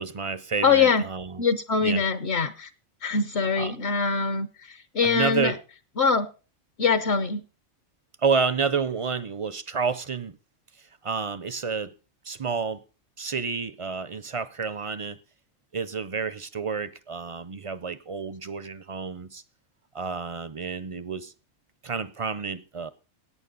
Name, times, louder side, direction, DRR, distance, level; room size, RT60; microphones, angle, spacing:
voice 1, 0.0-1.4 1.8-2.0 3.6-3.7 5.0-5.5 8.2-10.4 11.0-11.9 12.3-12.8 13.2-15.2 15.7-19.4 19.9-21.3 21.8-22.9, right 5 dB, 50° right, 0.4 m, -29 dB
voice 2, 0.6-1.0 1.4-2.7 3.0-5.6 6.0-6.3 6.8-7.4, left 5 dB, 55° left, 1.0 m, -23 dB
17.0 x 9.2 x 3.9 m
omnidirectional pair, 1.4 m